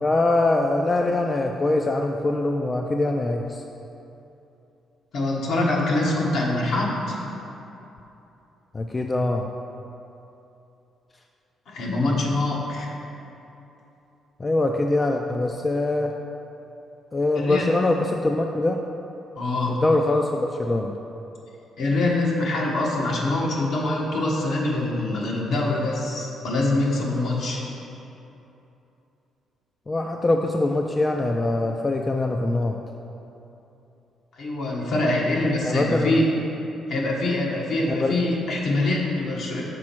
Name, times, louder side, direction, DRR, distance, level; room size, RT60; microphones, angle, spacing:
voice 1, 0.0-3.6 8.7-9.5 14.4-16.1 17.1-18.8 19.7-21.0 29.9-32.8 35.6-36.2 37.9-38.2, left 2 dB, 25° left, 3 dB, 0.4 m, -23 dB
voice 2, 5.1-7.2 11.7-12.9 17.3-17.7 19.3-19.8 21.8-27.6 34.3-36.2 36.9-39.6, left 2 dB, 70° left, -3 dB, 1.4 m, -24 dB
6.1 x 4.2 x 6.1 m, 2.9 s
cardioid pair, 90°, 0 cm